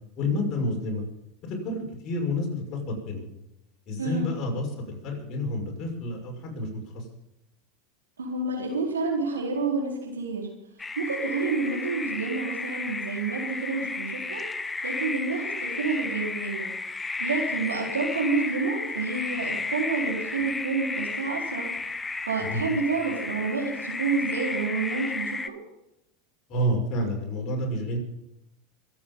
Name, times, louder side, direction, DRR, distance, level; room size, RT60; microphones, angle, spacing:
voice 1, 0.2-1.0 1.4-3.3 3.9-7.0 22.4-22.6 26.5-28.0, left 1 dB, 45° left, 1 dB, 5.9 m, -29 dB
voice 2, 8.2-10.5 11.0-14.4 14.8-16.7 17.2-21.7 22.3-25.6, right 4 dB, 90° right, -1 dB, 4.1 m, -29 dB
sound 1, 10.8-25.5, left 3 dB, 15° left, 0.8 m, -33 dB
24.5 x 8.9 x 5.5 m, 0.88 s
hypercardioid pair, 90°, 0 cm